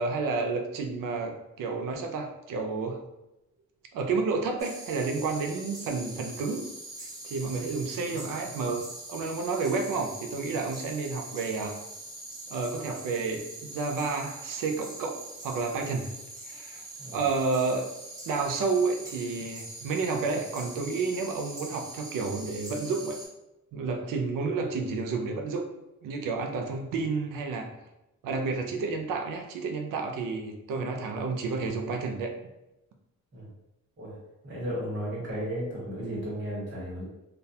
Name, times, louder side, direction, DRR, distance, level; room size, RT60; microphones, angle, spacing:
voice 1, 0.0-3.0 3.9-6.6 7.2-8.8 9.1-11.8 12.5-15.2 15.4-16.1 16.5-16.8 17.1-17.9 18.3-23.2 23.7-25.6 26.0-27.7 28.2-32.3, right 4 dB, 90° right, 3 dB, 0.5 m, -30 dB
sound 1, 4.6-23.3, right 2 dB, 10° right, 0.8 m, -43 dB
voice 2, 34.4-37.0, equal, 35° right, -5 dB, 1.0 m, -34 dB
2.3 x 2.2 x 2.7 m, 0.93 s
cardioid pair, 100°, 32 cm